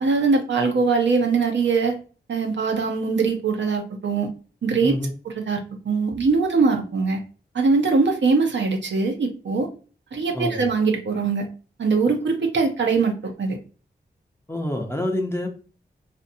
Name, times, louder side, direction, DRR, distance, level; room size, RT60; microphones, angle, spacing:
voice 1, 0.0-2.0 2.3-4.3 4.6-4.9 5.2-5.6 5.8-7.2 7.5-9.7 10.1-11.5 11.8-13.6, right 4 dB, 75° right, 3 dB, 0.6 m, -22 dB
voice 2, 10.3-10.7 14.5-15.6, left 1 dB, 15° left, 3 dB, 0.7 m, -27 dB
2.6 x 2.5 x 2.6 m, 0.37 s
cardioid pair, 50°, 19 cm